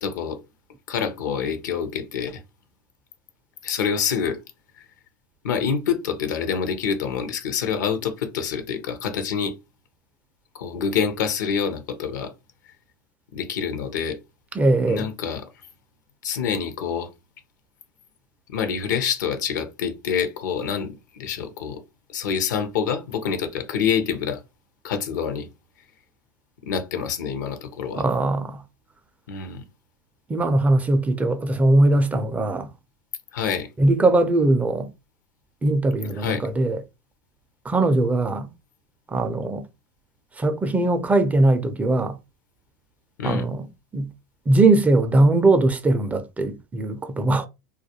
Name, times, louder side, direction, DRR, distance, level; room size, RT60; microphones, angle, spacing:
voice 1, 0.0-0.4 0.9-2.4 3.6-4.4 4.8-4.9 5.4-9.5 10.5-12.3 13.3-14.2 14.9-15.4 16.2-17.1 18.5-21.8 22.1-24.4 24.8-25.5 26.7-28.0 29.3-29.6 33.3-33.7 36.2-36.4 43.2-43.4, left 7 dB, 75° left, 0.6 m, -26 dB
voice 2, 14.5-15.1 28.0-28.6 30.3-32.7 33.8-34.9 35.6-36.8 37.6-38.5 39.1-39.6 40.3-42.2 43.2-43.7 43.9-44.1 44.5-47.5, right 2 dB, 15° right, 0.4 m, -20 dB
2.3 x 2.2 x 2.7 m
hypercardioid pair, 95°, 10 cm